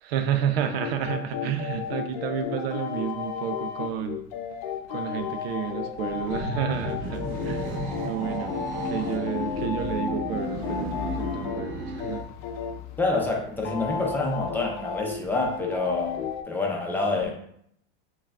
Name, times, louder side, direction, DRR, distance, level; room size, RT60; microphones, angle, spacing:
voice 1, 0.0-4.3 4.9-12.3, right 8 dB, 85° right, 6 dB, 0.5 m, -30 dB
sound 1, 0.8-16.4, left 7 dB, 55° left, 0.5 m, -33 dB
sound 2, 6.0-12.2, right 1 dB, 45° right, 0.8 m, -34 dB
voice 2, 13.0-17.3, left 3 dB, 5° left, -1 dB, 0.5 m, -27 dB
5.5 x 2.4 x 2.4 m, 0.70 s
supercardioid pair, 140°, 30 cm